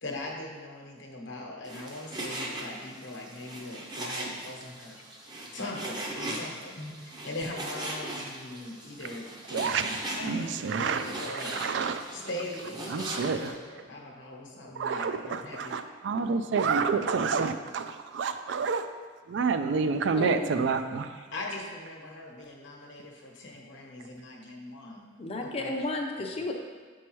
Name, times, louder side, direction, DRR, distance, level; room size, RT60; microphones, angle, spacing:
voice 1, 0.0-5.0 5.5-11.8 12.1-15.8 21.3-25.0 25.6-25.7, left 1 dB, 75° left, 0 dB, 1.0 m, -40 dB
Frying (food), 1.6-13.5, right 1 dB, 20° right, 0.6 m, -39 dB
voice 2, 9.5-9.9 10.2-12.0 12.9-13.5 14.8-18.9 19.3-21.1, right 5 dB, 70° right, 9 dB, 0.3 m, -29 dB
voice 3, 20.1-20.6 25.2-26.5, left 2 dB, 30° left, 2 dB, 0.5 m, -33 dB
7.0 x 4.6 x 3.0 m, 1.5 s
head